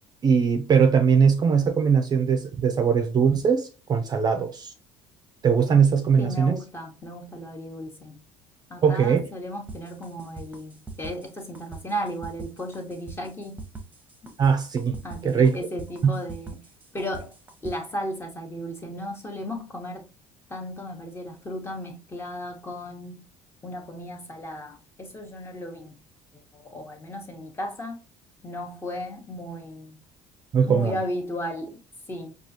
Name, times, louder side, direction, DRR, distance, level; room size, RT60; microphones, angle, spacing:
voice 1, 0.2-4.7 5.4-6.6 8.8-9.3 14.4-15.0 15.2-15.6 16.0-16.2 30.5-31.0, right 6 dB, 35° right, 0.4 m, -20 dB
voice 2, 6.2-8.2 8.7-13.6 15.0-16.6 16.9-17.3 17.6-20.0 20.5-23.2 23.6-25.9 26.3-28.0 28.4-30.0 30.6-31.8 32.1-32.3, equal, 20° left, 0.9 m, -35 dB
sound 1, 9.7-17.7, right 3 dB, 15° right, 0.9 m, -41 dB
4.7 x 2.4 x 2.7 m
cardioid pair, 110°, 12 cm